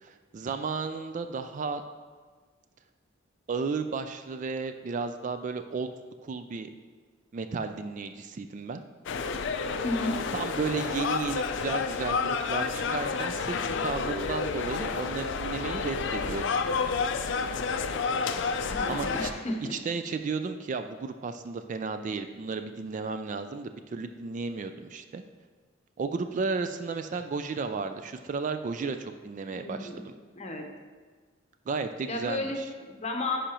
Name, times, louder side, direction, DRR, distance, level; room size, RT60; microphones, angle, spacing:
voice 1, 0.0-1.8 3.5-5.9 6.2-6.7 7.3-8.8 10.3-16.4 18.9-19.3 19.7-25.2 26.0-29.9 31.7-32.6, right 4 dB, 40° right, 8 dB, 0.3 m, -33 dB
sound 1, 9.1-19.3, left 5 dB, 65° left, 0.4 m, -30 dB
voice 2, 9.8-10.2 18.7-19.7 29.5-30.0 30.4-30.6 32.1-33.4, left 2 dB, 35° left, 2 dB, 0.9 m, -33 dB
10.0 x 5.0 x 3.0 m, 1.5 s
head